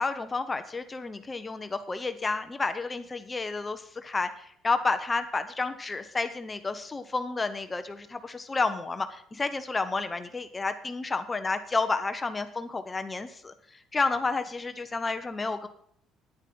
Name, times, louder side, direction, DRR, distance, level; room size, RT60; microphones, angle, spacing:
voice 1, 0.0-15.7, left 3 dB, 20° left, 9 dB, 0.8 m, -31 dB
10.0 x 9.8 x 6.0 m, 0.66 s
cardioid pair, 140°, 0 cm